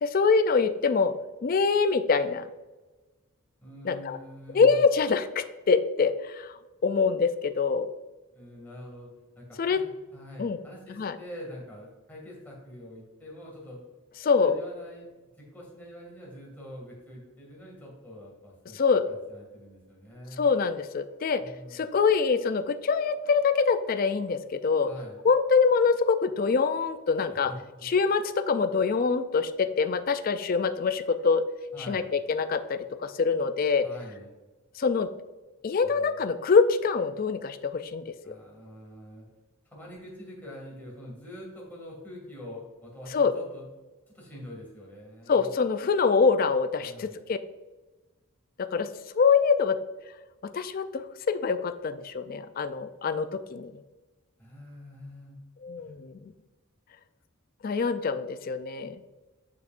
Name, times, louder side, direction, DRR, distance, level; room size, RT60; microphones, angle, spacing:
voice 1, 0.0-1.1 1.4-2.5 3.8-4.2 4.5-6.5 6.8-7.9 9.6-9.8 10.4-10.6 11.0-11.1 14.2-14.6 18.8-19.0 20.4-21.4 21.7-24.9 25.2-27.5 27.8-31.4 31.9-33.9 34.8-35.1 35.6-38.1 43.1-43.3 45.3-47.4 48.6-48.9 49.1-49.8 50.5-53.7 55.6-56.1 57.6-59.0, left 5 dB, 40° left, 10 dB, 0.3 m, -24 dB
voice 2, 3.6-4.8 8.3-13.8 14.3-15.1 15.4-18.8 19.1-20.5 21.4-21.8 24.8-25.2 27.3-27.9 31.7-32.1 33.8-34.3 35.8-36.1 38.2-39.3 39.7-43.7 44.1-45.5 46.8-47.1 54.4-55.4 55.8-56.0, equal, 10° left, -4 dB, 2.2 m, -45 dB
7.2 x 6.5 x 2.5 m, 1.2 s
head